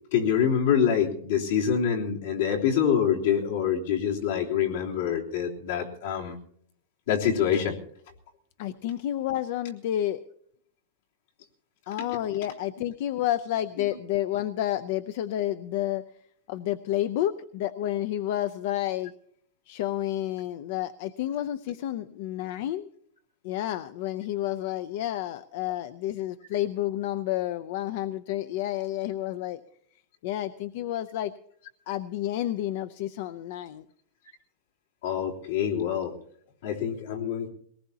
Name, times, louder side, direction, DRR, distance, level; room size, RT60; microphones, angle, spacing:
voice 1, 0.1-6.4 7.1-7.8 13.8-13.9 35.0-36.1 36.6-37.5, left 8 dB, 80° left, -3 dB, 3.3 m, -25 dB
voice 2, 8.6-10.2 11.9-16.0 16.5-19.1 19.7-22.9 23.4-29.6 30.2-31.3 31.9-33.8, left 13 dB, 55° left, 13 dB, 0.5 m, -30 dB
21.5 x 18.5 x 2.8 m, 0.65 s
supercardioid pair, 165°, 0 cm